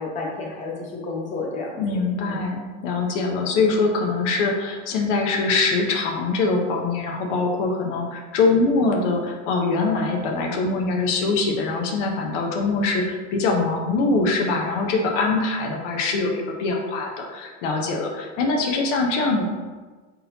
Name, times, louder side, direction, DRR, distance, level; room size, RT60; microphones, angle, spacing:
voice 1, 0.0-2.5, left 3 dB, 20° left, -2 dB, 0.7 m, -32 dB
voice 2, 1.8-19.5, left 3 dB, 90° left, 1 dB, 0.9 m, -23 dB
4.1 x 3.9 x 2.7 m, 1.4 s
supercardioid pair, 160°, 35 cm